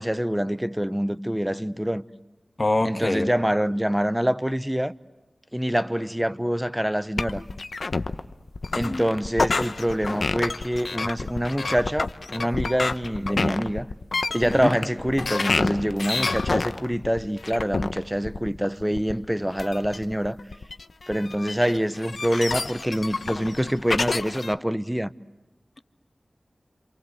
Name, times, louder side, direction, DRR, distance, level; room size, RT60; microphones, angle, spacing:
voice 1, 0.0-2.0 2.8-4.9 5.5-7.4 8.7-13.9 14.3-20.4 21.1-25.1, equal, 5° right, 0.9 m, -25 dB
voice 2, 2.6-3.3 8.7-9.0 14.5-14.8, left 2 dB, 40° left, 1.5 m, -25 dB
sound 1, 7.2-24.5, left 3 dB, 75° left, 0.9 m, -28 dB
28.0 x 26.5 x 8.0 m
wide cardioid pair, 65°, 0 cm